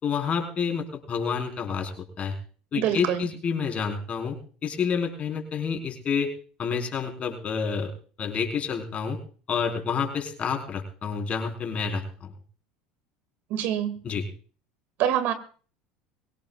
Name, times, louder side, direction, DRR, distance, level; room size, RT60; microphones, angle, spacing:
voice 1, 0.0-2.3 2.7-4.4 4.6-6.3 6.6-7.9 8.2-9.2 9.5-12.3 14.0-14.3, left 6 dB, 40° left, 3 dB, 4.1 m, -29 dB
voice 2, 2.7-3.3 13.5-14.0 15.0-15.3, right 10 dB, 60° right, 10 dB, 2.0 m, -25 dB
23.0 x 17.5 x 2.4 m, 0.40 s
supercardioid pair, 90°, 4 cm